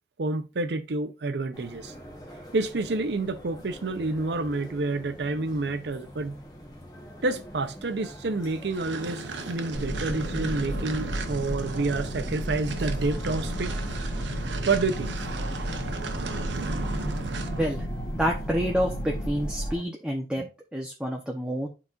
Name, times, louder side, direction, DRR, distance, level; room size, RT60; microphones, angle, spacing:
voice 1, 0.2-1.9 2.5-6.4 7.2-13.8 14.6-15.1, right 3 dB, 70° right, 0.6 m, -29 dB
sound 1, 1.5-19.8, equal, 20° left, 1.1 m, -45 dB
sound 2, 8.7-17.7, right 3 dB, 85° right, 0.9 m, -36 dB
sound 3, 9.7-19.8, right 1 dB, 80° left, 1.9 m, -33 dB
voice 2, 18.1-21.7, equal, 5° right, 0.7 m, -28 dB
11.5 x 4.2 x 2.5 m
head